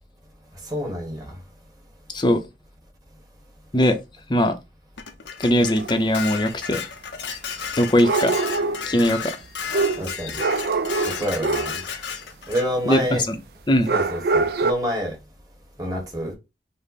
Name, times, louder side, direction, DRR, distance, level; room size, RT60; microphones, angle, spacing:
voice 1, 0.7-1.3 10.0-10.4 11.0-11.8 12.5-13.2 13.9-15.1 15.8-16.3, equal, 20° right, 1.3 m, -27 dB
Dishes pots and pans, 5.0-12.7, left 7 dB, 85° left, 0.7 m, -33 dB
voice 2, 5.4-6.8 7.8-8.3 8.9-9.3 12.9-13.4 13.7-13.9, left 1 dB, 25° left, 0.6 m, -20 dB
sound 1, 5.8-5.9 8.0-8.9 9.7-11.8 13.9-14.7, right 3 dB, 60° right, 0.4 m, -24 dB
5.2 x 2.1 x 4.1 m
head